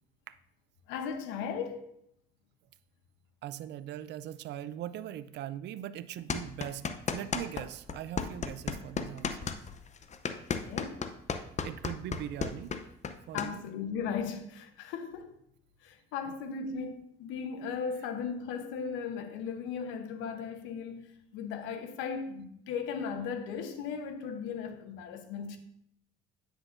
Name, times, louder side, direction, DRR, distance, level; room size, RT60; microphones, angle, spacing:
voice 1, 0.9-2.0 10.3-11.1 13.3-15.4 15.8-25.6, left 6 dB, 80° left, 0.9 m, -37 dB
voice 2, 3.4-6.8 7.1-9.5 11.3-12.7 13.3-13.6 16.3-16.4, right 11 dB, 65° right, 0.5 m, -40 dB
sound 1, 6.3-7.6 7.9-13.5, left 6 dB, 35° left, 0.7 m, -33 dB
9.4 x 6.2 x 2.6 m
supercardioid pair, 75°, 19 cm